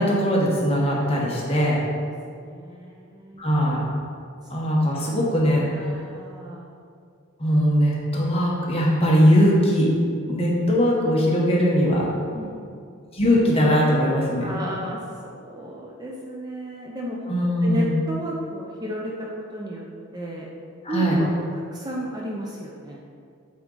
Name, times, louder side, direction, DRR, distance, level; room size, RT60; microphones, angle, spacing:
voice 1, 0.0-1.8 3.4-3.8 4.5-5.9 7.4-9.9 10.3-12.1 13.1-14.5 17.3-17.9 20.8-21.2, equal, 30° left, -4 dB, 1.1 m, -20 dB
voice 2, 2.3-3.4 5.7-6.7 12.3-12.9 14.4-15.0 15.4-17.2 17.5-19.8 20.1-20.5 20.9-21.3 21.7-23.0, equal, 20° right, -3 dB, 0.5 m, -33 dB
8.0 x 3.7 x 3.8 m, 2.3 s
head